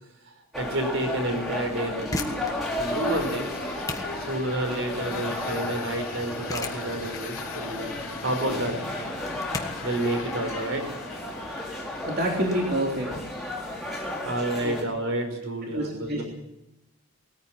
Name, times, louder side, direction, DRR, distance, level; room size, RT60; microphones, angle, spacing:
sound 1, 0.5-14.8, left 1 dB, ahead, 4.4 m, -34 dB
voice 1, 0.5-3.5 4.1-8.8 9.8-10.9 14.2-16.2, right 1 dB, 65° right, 6 dB, 4.7 m, -30 dB
sound 2, 2.0-12.6, left 2 dB, 15° left, 1.6 m, -39 dB
sound 3, 2.4-13.1, left 4 dB, 75° left, 3.5 m, -41 dB
voice 2, 12.0-13.1 14.6-14.8 15.7-16.2, right 1 dB, 45° right, -1 dB, 3.4 m, -27 dB
20.5 x 14.5 x 8.9 m, 0.89 s
head